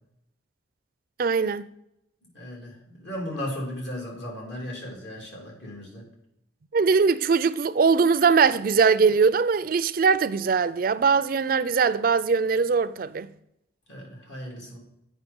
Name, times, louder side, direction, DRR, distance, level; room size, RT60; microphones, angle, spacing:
voice 1, 1.2-1.7 6.7-13.3, right 5 dB, 50° right, 0.4 m, -21 dB
voice 2, 2.3-6.0 13.9-14.8, left 1 dB, 65° left, 2.9 m, -36 dB
8.3 x 5.4 x 5.3 m
head